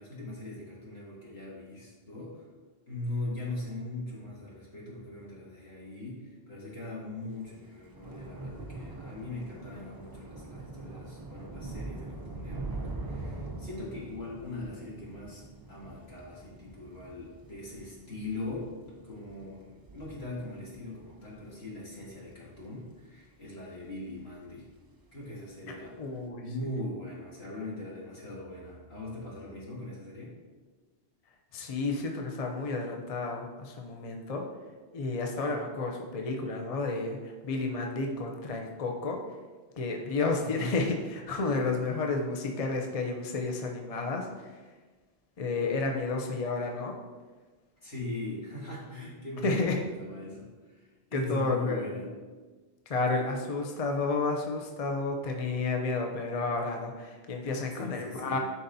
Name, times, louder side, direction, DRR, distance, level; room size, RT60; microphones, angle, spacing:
voice 1, 0.0-2.4 2.9-15.4 15.7-18.7 19.0-24.7 25.1-30.3 40.5-40.7 47.8-52.1 57.7-58.4, left 2 dB, 65° left, -6 dB, 2.3 m, -40 dB
Thunder / Rain, 7.4-24.0 24.3-24.8 25.0-25.2, right 2 dB, 35° right, 0.3 m, -43 dB
voice 2, 26.0-26.4 31.5-34.4 34.9-39.2 39.8-44.6 45.4-46.9 48.9-49.0 49.4-49.8 51.1-51.9 52.9-58.4, left 3 dB, 40° left, 2 dB, 0.6 m, -31 dB
11.0 x 4.1 x 2.7 m, 1.3 s
omnidirectional pair, 1.2 m